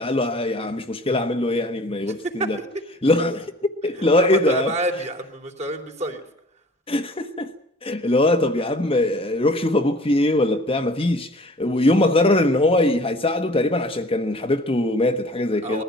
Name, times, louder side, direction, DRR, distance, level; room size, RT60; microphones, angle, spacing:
voice 1, 0.0-2.2 2.5-2.6 3.0-4.7 6.9-7.5 7.8-15.8, left 1 dB, 30° left, 1.2 m, -21 dB
voice 2, 2.1-2.8 3.9-6.2 15.5-15.8, right 1 dB, 35° right, 3.2 m, -28 dB
21.0 x 14.5 x 9.3 m
head